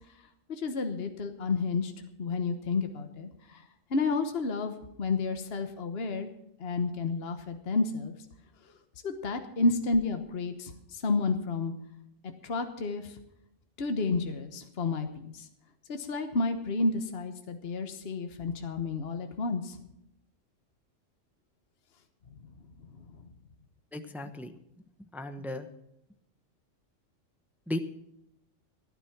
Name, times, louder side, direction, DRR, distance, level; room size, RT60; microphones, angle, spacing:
voice 1, 0.5-1.9 2.2-3.6 3.9-6.3 6.6-8.1 9.0-11.7 12.4-13.1 13.8-15.1 15.3-15.4 15.9-19.8, left 3 dB, 50° left, 6 dB, 1.4 m, -31 dB
voice 2, 23.9-24.5 25.1-25.7 27.7-27.8, left 1 dB, ahead, 8 dB, 0.8 m, -35 dB
15.5 x 10.0 x 5.9 m, 0.82 s
omnidirectional pair, 1.3 m